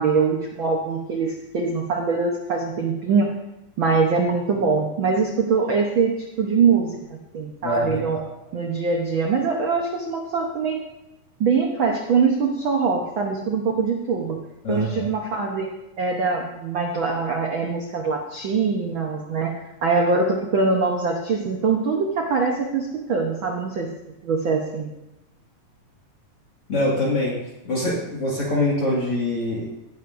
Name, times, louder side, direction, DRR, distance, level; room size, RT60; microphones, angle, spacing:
voice 1, 0.0-3.3 3.8-7.0 7.3-8.2 8.5-10.8 11.4-14.4 14.7-15.7 16.0-23.9 24.2-24.9, right 4 dB, 80° right, 1 dB, 1.1 m, -23 dB
voice 2, 7.6-8.2 14.6-15.0 26.7-27.4 27.6-29.6, left 1 dB, 45° left, -6 dB, 2.7 m, -24 dB
17.0 x 10.5 x 2.6 m, 0.97 s
omnidirectional pair, 3.8 m